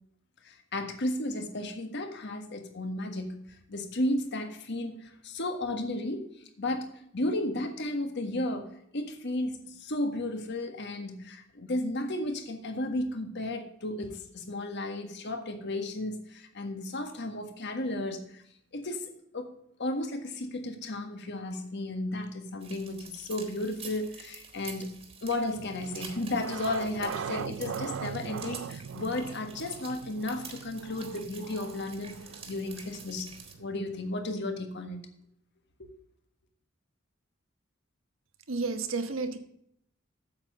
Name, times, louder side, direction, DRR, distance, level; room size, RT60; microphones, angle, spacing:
voice 1, 0.4-3.4 3.7-6.2 6.6-8.7 8.9-18.4 18.7-19.5 19.8-32.2 32.5-33.3 33.6-35.0 35.8-35.9, left 1 dB, 60° left, 6 dB, 1.6 m, -34 dB
sound 1, 22.6-33.5, right 5 dB, 30° right, 1.9 m, -48 dB
sound 2, 25.5-34.3, right 7 dB, 70° right, 0.4 m, -41 dB
voice 2, 38.5-39.4, right 4 dB, 85° right, 7 dB, 1.3 m, -31 dB
8.7 x 7.5 x 6.7 m, 0.70 s
head